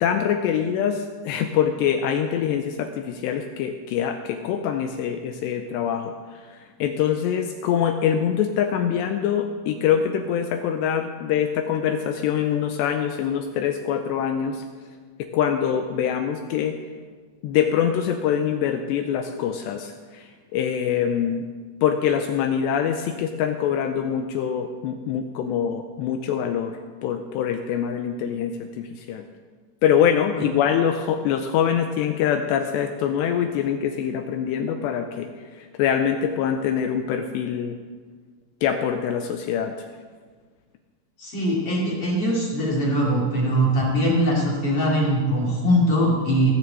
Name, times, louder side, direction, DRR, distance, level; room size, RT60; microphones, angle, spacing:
voice 1, 0.0-6.1 6.5-14.6 15.3-16.8 17.4-21.5 21.8-29.2 29.8-37.8 38.6-39.7, left 8 dB, 90° left, 6 dB, 2.5 m, -24 dB
voice 2, 41.2-46.5, equal, 40° left, -4 dB, 2.3 m, -21 dB
18.5 x 6.9 x 7.8 m, 1.5 s
omnidirectional pair, 5.6 m